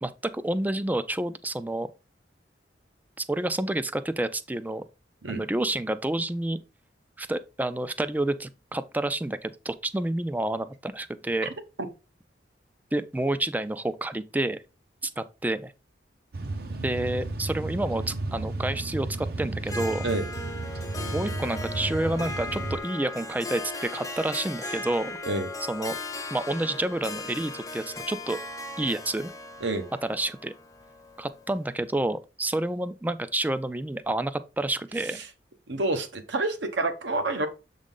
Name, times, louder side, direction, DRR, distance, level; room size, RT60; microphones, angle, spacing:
voice 1, 0.0-1.9 3.2-4.8 5.3-6.6 7.2-11.5 12.9-14.6 15.0-15.7 16.8-20.1 21.1-25.2 25.7-25.9 26.3-28.4 28.8-29.3 30.0-30.5 31.2-35.2, right 1 dB, 10° right, 0.3 m, -29 dB
sound 1, 16.3-22.8, right 2 dB, 55° right, 0.7 m, -33 dB
Harp, 19.6-31.5, left 2 dB, 20° left, 0.6 m, -37 dB
voice 2, 35.7-37.5, right 2 dB, 75° right, 1.0 m, -28 dB
7.2 x 3.7 x 3.8 m
head